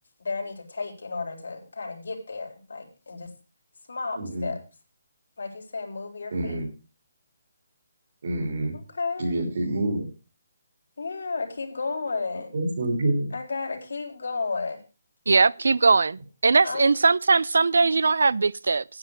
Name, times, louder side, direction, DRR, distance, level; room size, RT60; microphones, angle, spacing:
voice 1, 0.2-3.3 3.9-4.6 5.4-6.6 8.9-9.3 11.0-12.5 13.3-14.8 16.6-16.9, left 4 dB, 90° left, 4.0 m, -32 dB
voice 2, 4.1-4.6 6.3-6.7 8.2-8.8 9.2-10.1 12.5-13.3, right 1 dB, 50° right, 3.3 m, -27 dB
voice 3, 15.3-18.8, right 4 dB, 85° right, 0.5 m, -20 dB
9.6 x 8.8 x 6.5 m
hypercardioid pair, 180°, 0 cm